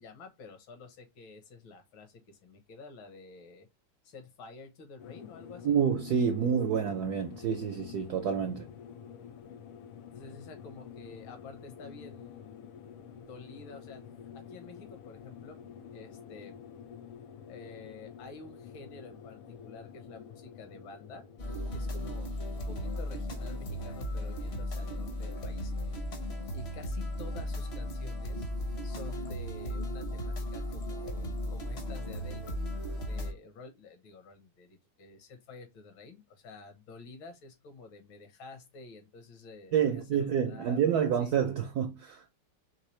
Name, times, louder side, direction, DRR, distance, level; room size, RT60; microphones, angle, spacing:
voice 1, 0.0-3.7 4.0-5.8 6.4-6.8 10.1-12.7 13.2-14.0 14.3-15.6 15.9-16.6 17.5-21.2 21.7-22.4 22.7-26.0 26.5-28.5 28.8-32.4 33.0-41.3, left 3 dB, 65° left, 1.8 m, -50 dB
sound 1, 5.0-24.6, left 8 dB, 85° left, 1.6 m, -49 dB
voice 2, 5.6-8.7 39.7-42.2, right 7 dB, 85° right, 0.8 m, -28 dB
sound 2, 21.4-33.3, left 1 dB, 50° left, 0.8 m, -36 dB
4.6 x 3.3 x 3.1 m
omnidirectional pair, 2.4 m